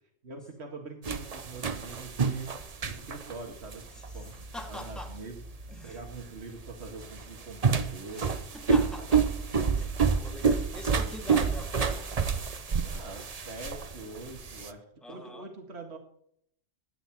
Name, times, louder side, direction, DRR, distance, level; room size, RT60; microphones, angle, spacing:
voice 1, 0.2-2.5 2.8-3.9 4.1-8.3 12.8-16.0, right 3 dB, 55° right, 2 dB, 2.1 m, -44 dB
sound 1, 1.0-14.7, right 5 dB, 35° right, 0.8 m, -29 dB
voice 2, 3.9-5.1 5.7-6.0 8.1-9.3 9.6-9.9 10.2-12.1 15.0-15.5, left 1 dB, ahead, 1 dB, 2.0 m, -44 dB
13.5 x 9.6 x 6.0 m, 0.69 s
omnidirectional pair, 1.3 m